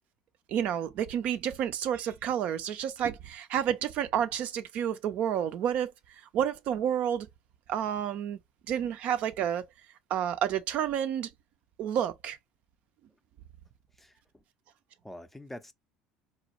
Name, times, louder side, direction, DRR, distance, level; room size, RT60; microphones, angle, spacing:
voice 1, 0.5-5.9 6.3-7.3 7.7-8.4 8.7-9.7 10.1-11.3 11.8-12.4, right 9 dB, 50° right, 0.4 m, -30 dB
voice 2, 14.0-14.4 15.0-15.7, left 1 dB, 5° left, 0.5 m, -46 dB
4.1 x 2.2 x 2.9 m
figure-of-eight pair, 65°, 3 cm